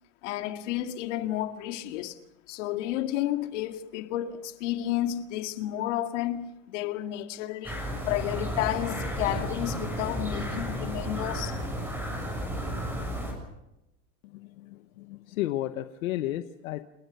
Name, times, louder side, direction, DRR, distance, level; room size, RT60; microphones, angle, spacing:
voice 1, 0.2-2.2 2.5-11.6, left 13 dB, 60° left, 2.2 m, -31 dB
sound 1, 7.6-13.3, equal, 5° right, 6.6 m, -33 dB
voice 2, 14.3-16.8, left 14 dB, 80° left, 1.2 m, -33 dB
29.5 x 18.5 x 6.8 m
supercardioid pair, 165°, 41 cm